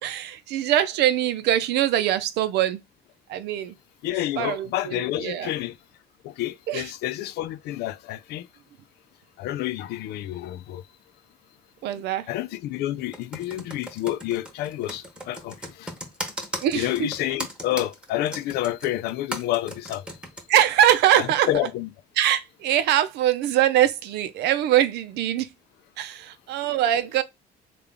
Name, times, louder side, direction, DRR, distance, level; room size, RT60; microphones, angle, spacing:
voice 1, 0.0-2.8 3.3-3.8 4.4-5.5 6.7-6.9 11.8-12.3 16.5-17.1 20.5-21.5 22.2-25.5 26.0-27.2, right 11 dB, 80° right, 0.6 m, -23 dB
voice 2, 4.0-5.8 6.2-8.5 9.4-10.8 12.3-15.9 16.7-20.2 21.2-21.9, left 14 dB, 75° left, 0.4 m, -29 dB
Computer keyboard, 13.1-20.4, equal, 5° right, 1.0 m, -36 dB
3.4 x 2.4 x 3.6 m
cardioid pair, 110°, 17 cm